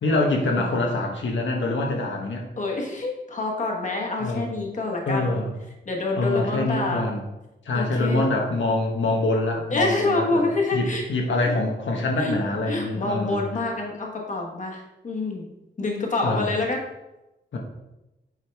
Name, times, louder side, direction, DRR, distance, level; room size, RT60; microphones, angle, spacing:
voice 1, 0.0-2.5 4.2-4.5 5.1-5.5 6.2-7.2 7.6-10.4 10.7-13.5 16.2-16.5 17.5-17.6, left 2 dB, 90° left, 0 dB, 1.2 m, -25 dB
voice 2, 2.6-5.4 5.9-7.0 7.7-8.2 9.7-11.0 11.5-11.6 12.2-12.4 12.7-15.5 15.8-16.8, left 3 dB, 40° left, 0 dB, 1.2 m, -27 dB
8.4 x 4.7 x 3.4 m, 0.97 s
wide cardioid pair, 170°, 19 cm